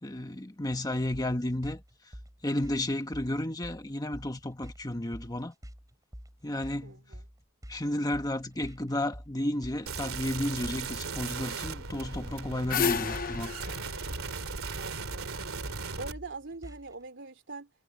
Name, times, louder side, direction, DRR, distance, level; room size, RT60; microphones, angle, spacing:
voice 1, 0.0-2.1 2.4-5.5 6.4-7.0 7.7-13.5, left 1 dB, 20° left, 1.4 m, -32 dB
sound 1, 1.1-17.0, equal, 15° right, 5.9 m, -47 dB
voice 2, 6.8-7.3 14.7-15.5 16.0-17.7, right 3 dB, 60° right, 3.4 m, -43 dB
sound 2, 9.9-16.1, right 4 dB, 80° right, 3.2 m, -37 dB
sound 3, 12.2-15.4, left 6 dB, 45° left, 1.0 m, -32 dB
head